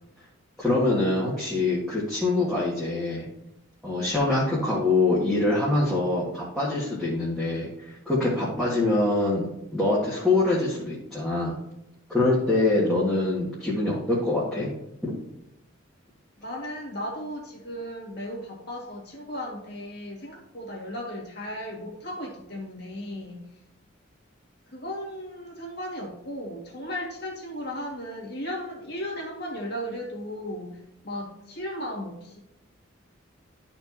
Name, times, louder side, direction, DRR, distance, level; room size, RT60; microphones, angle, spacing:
voice 1, 0.6-3.3 3.8-11.6 12.1-14.7 15.0-15.1, left 2 dB, ahead, -9 dB, 1.7 m, -24 dB
voice 2, 16.4-23.5 24.7-32.4, equal, 55° left, -1 dB, 2.0 m, -36 dB
12.5 x 4.4 x 2.8 m, 0.86 s
head